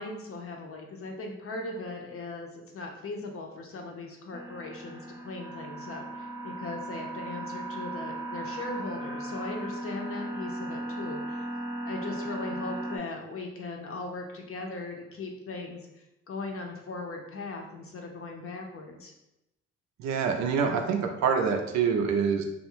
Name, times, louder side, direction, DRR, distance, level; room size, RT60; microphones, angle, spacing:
voice 1, 0.0-11.5 11.9-19.1, left 3 dB, 50° left, 2 dB, 0.6 m, -39 dB
sound 1, 4.3-13.0, right 1 dB, 10° right, 0.4 m, -37 dB
voice 2, 20.0-22.4, right 6 dB, 70° right, 4 dB, 0.5 m, -26 dB
2.4 x 2.0 x 3.0 m, 0.90 s
supercardioid pair, 50°, 29 cm